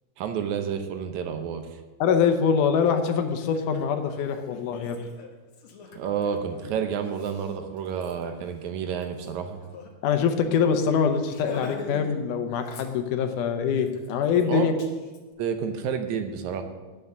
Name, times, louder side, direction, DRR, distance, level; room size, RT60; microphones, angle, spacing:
voice 1, 0.2-1.8 5.9-9.6 14.5-14.7 15.4-16.6, right 7 dB, 75° right, 7 dB, 2.1 m, -30 dB
voice 2, 2.0-5.0 10.0-14.7, left 6 dB, 85° left, 7 dB, 2.4 m, -24 dB
Laughter, 2.8-2.9 3.3-9.9 10.2-10.4 10.6-10.8 11.2-12.2 12.5-13.3 13.7-15.2, left 4 dB, 55° left, 1.6 m, -45 dB
9.7 x 7.5 x 6.6 m, 1.3 s
omnidirectional pair, 3.6 m